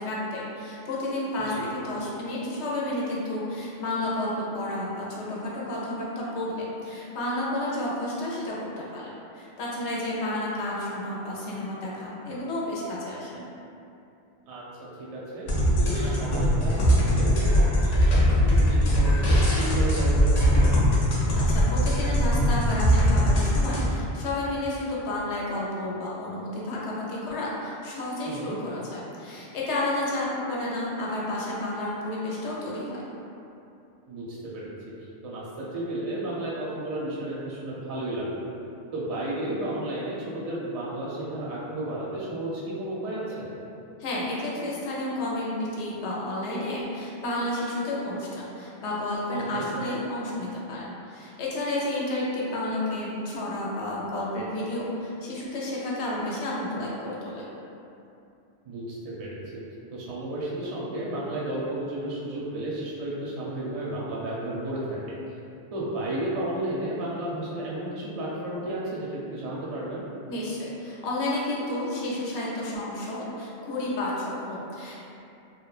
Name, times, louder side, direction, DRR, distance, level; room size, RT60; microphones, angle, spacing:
voice 1, 0.0-13.4 21.1-33.0 44.0-57.4 70.3-75.0, left 1 dB, 85° left, -5 dB, 0.9 m, -31 dB
voice 2, 15.0-15.5 15.8-18.2 18.5-20.8 28.2-28.6 34.1-34.9 35.2-38.4 38.9-43.5 49.3-49.7 58.6-59.6 59.9-65.1 65.7-70.1, right 1 dB, 45° right, -6 dB, 0.5 m, -33 dB
sound 1, 15.5-23.9, equal, 55° left, 0.5 m, -21 dB
3.1 x 2.0 x 2.3 m, 2.7 s
omnidirectional pair, 1.1 m